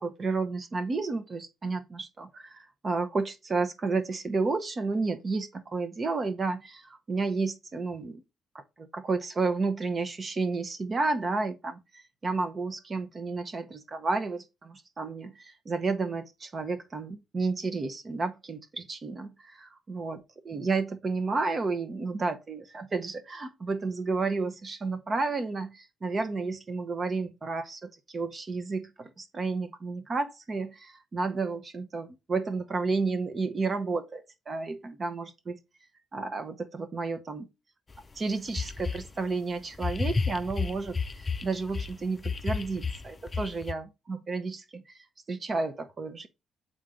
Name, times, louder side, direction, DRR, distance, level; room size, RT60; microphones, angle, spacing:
voice 1, 0.0-8.2 8.5-19.3 19.9-35.6 36.1-37.5 38.2-41.0 41.4-45.0 45.3-46.3, right 3 dB, 35° right, 0.7 m, -31 dB
sound 1, 37.9-38.0 38.5-39.1 39.7-41.9 42.2-43.7, left 4 dB, 30° left, 0.4 m, -31 dB
7.4 x 3.8 x 3.7 m
cardioid pair, 90°, 0 cm